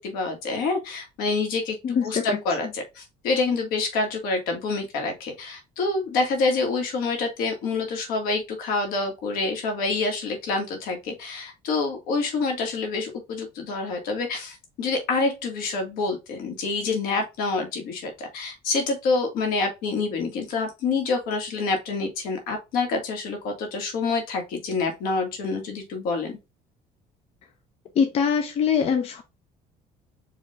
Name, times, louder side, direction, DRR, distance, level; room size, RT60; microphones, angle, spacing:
voice 1, 0.0-26.4, left 3 dB, 75° left, 3 dB, 1.9 m, -27 dB
voice 2, 1.8-2.4 28.0-29.2, left 7 dB, 40° left, 5 dB, 0.7 m, -23 dB
5.0 x 2.9 x 3.7 m, 0.25 s
cardioid pair, 145°, 15 cm